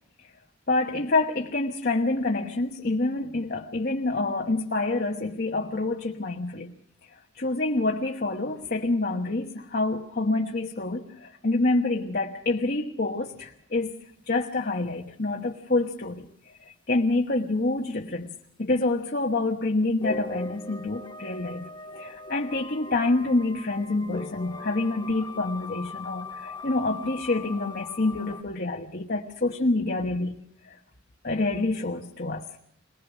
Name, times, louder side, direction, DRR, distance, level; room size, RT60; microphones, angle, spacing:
voice 1, 0.7-6.7 7.4-14.0 14.3-16.2 16.6-18.3 18.6-30.7 31.2-32.4, left 2 dB, 50° left, 1.2 m, -27 dB
sound 1, 20.0-28.4, left 2 dB, 25° left, 1.2 m, -40 dB
23.0 x 20.5 x 6.2 m
head